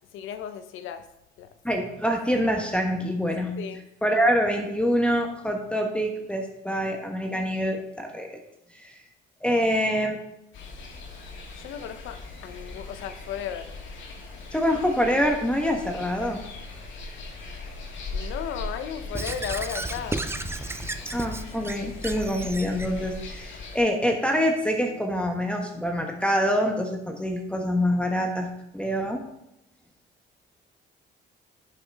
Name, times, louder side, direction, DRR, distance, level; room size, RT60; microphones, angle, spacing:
voice 1, 0.1-1.0 1.4-1.5 3.6-3.8 11.5-12.2 12.4-13.7 18.1-20.2, left 9 dB, 90° left, 9 dB, 0.8 m, -35 dB
voice 2, 1.6-3.6 4.0-8.4 8.7-9.0 9.4-10.2 14.5-16.4 21.1-29.2, equal, 5° left, 2 dB, 1.2 m, -25 dB
sound 1, 10.5-23.8, left 3 dB, 70° left, 2.1 m, -39 dB
Squeak / Writing, 19.1-22.9, right 2 dB, 10° right, 0.5 m, -33 dB
11.5 x 5.9 x 3.5 m, 0.83 s
cardioid pair, 90°, 20 cm